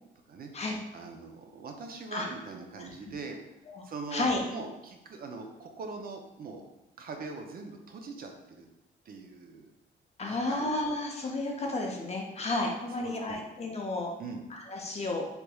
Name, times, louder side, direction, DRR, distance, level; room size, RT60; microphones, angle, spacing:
voice 1, 0.9-3.4 3.8-6.6 7.0-8.7 9.1-9.7 10.2-10.6 13.0-13.4 14.2-14.4, right 4 dB, 50° right, 4 dB, 0.5 m, -42 dB
voice 2, 2.8-3.1 3.7-3.8 4.1-4.4 10.2-14.1 14.5-15.2, left 2 dB, 35° left, 1 dB, 0.6 m, -32 dB
3.3 x 2.9 x 2.2 m, 0.96 s
cardioid pair, 90°, 20 cm